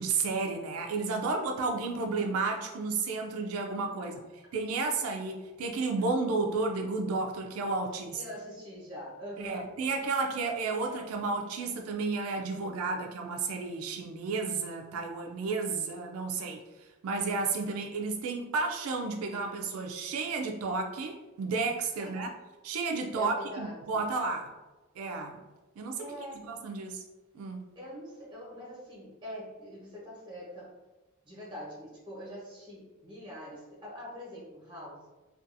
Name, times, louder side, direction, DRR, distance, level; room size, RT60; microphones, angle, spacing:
voice 1, 0.0-4.2 4.5-8.2 9.4-16.6 17.0-22.3 22.6-24.5 25.0-25.4 25.8-26.0 26.4-27.0 27.3-27.6, right 4 dB, 85° right, 3 dB, 0.3 m, -32 dB
voice 2, 7.9-9.7 22.0-22.4 23.1-24.0 26.0-26.5 27.7-30.7 31.2-35.1, equal, 25° right, -6 dB, 1.0 m, -44 dB
2.5 x 2.3 x 2.5 m, 1.1 s
head